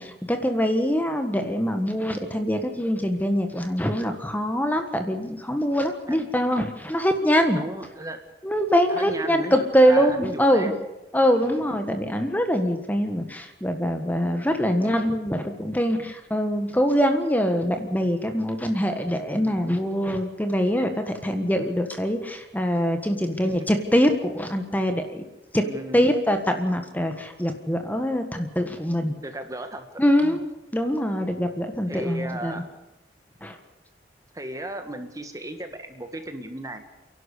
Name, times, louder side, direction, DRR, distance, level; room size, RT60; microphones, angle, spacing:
voice 1, 0.0-7.6 8.4-10.7 11.1-25.2 25.5-25.6 25.9-29.1 30.0-30.4 30.7-32.6 33.4-33.6, equal, 10° left, 6 dB, 1.5 m, -23 dB
voice 2, 7.5-8.2 8.9-10.8 11.4-11.6 14.8-15.0 19.3-19.6 23.4-23.5 25.6-26.1 29.2-29.9 30.1-30.4 31.9-32.7 34.3-36.8, right 1 dB, 20° right, 7 dB, 1.5 m, -35 dB
29.5 x 11.5 x 8.4 m, 0.95 s
head